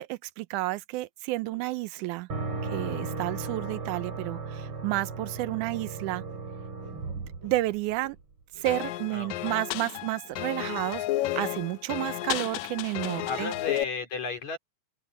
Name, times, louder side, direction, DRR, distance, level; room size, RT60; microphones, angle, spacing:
voice 1, 0.0-2.3 2.6-6.2 7.1-8.2 8.6-13.5, right 18 dB, 85° right, 2.1 m, -31 dB
sound 1, 1.4-2.8 3.0-7.1 7.4-9.4 9.6-11.2 11.5-11.9 12.1-12.4 13.1-13.5, equal, 25° right, 2.9 m, -56 dB
sound 2, 2.3-8.2, right 4 dB, 45° right, 3.8 m, -36 dB
sound 3, 8.7-13.8, left 15 dB, 80° left, 1.9 m, -32 dB
voice 2, 9.1-9.5 13.3-14.6, left 4 dB, 65° left, 5.2 m, -34 dB
open air
omnidirectional pair, 3.5 m